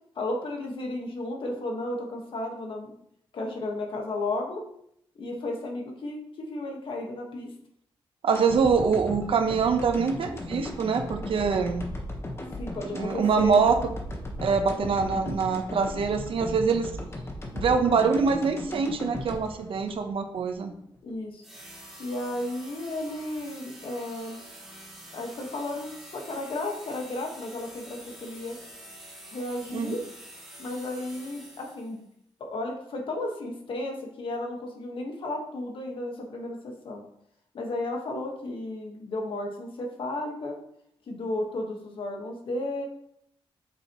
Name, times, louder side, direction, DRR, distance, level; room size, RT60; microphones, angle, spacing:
voice 1, 0.1-2.9 3.3-4.6 5.1-7.5 12.6-13.7 19.3-19.4 21.0-21.4 22.0-24.4 25.1-28.6 29.3-30.0 30.6-32.0 32.4-37.0 37.5-40.6 41.1-42.8, left 2 dB, 60° left, 1 dB, 1.5 m, -33 dB
voice 2, 8.2-11.9 12.9-13.8 14.4-16.9 17.5-20.7 29.7-29.9, right 5 dB, 65° right, 6 dB, 0.9 m, -24 dB
sound 1, 8.3-20.6 20.9-21.0, left 1 dB, 25° left, 1.3 m, -37 dB
sound 2, 21.4-32.0, right 1 dB, ahead, 2.4 m, -47 dB
8.1 x 6.1 x 3.1 m, 0.73 s
wide cardioid pair, 130°, 10 cm